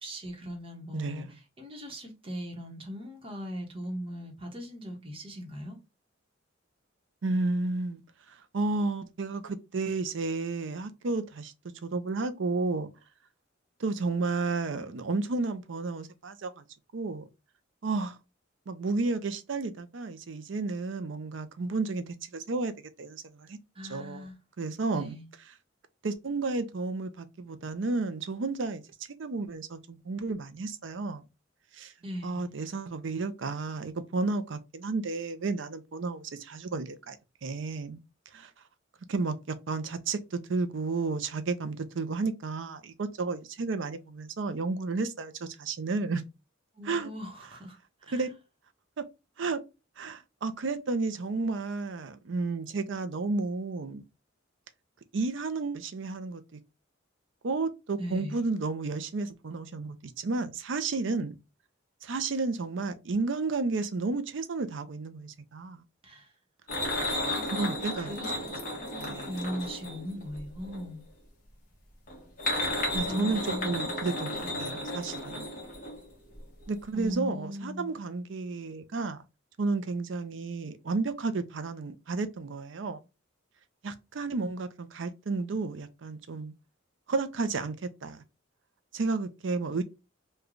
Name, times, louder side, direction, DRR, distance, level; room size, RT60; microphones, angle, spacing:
voice 1, 0.0-5.8 23.7-24.4 24.9-25.3 32.0-32.5 46.7-48.3 58.0-58.4 66.0-66.3 67.2-71.1 73.0-74.0 74.4-74.8 76.9-77.9, equal, 25° right, 0.9 m, -40 dB
voice 2, 0.9-1.3 7.2-8.0 8.3-11.5 11.8-12.9 13.8-16.6 16.9-17.2 17.8-18.2 18.7-22.7 23.0-23.6 23.9-24.3 24.6-25.1 26.0-28.8 29.2-31.2 31.7-31.9 32.2-37.2 37.4-38.0 38.3-38.5 39.1-46.2 46.9-47.1 48.1-48.3 49.0-49.1 49.4-49.6 50.0-54.0 55.1-56.6 57.4-61.4 62.0-65.8 67.4-68.1 69.0-69.3 72.9-75.5 76.7-79.2 79.6-83.0 83.8-86.5 87.1-87.8 88.0-88.2 88.9-89.8, right 3 dB, 65° right, 0.5 m, -32 dB
sound 1, 66.7-70.9 72.1-76.4 76.6-76.8 77.1-77.2, left 1 dB, 40° left, 1.2 m, -33 dB
3.1 x 2.3 x 3.7 m
head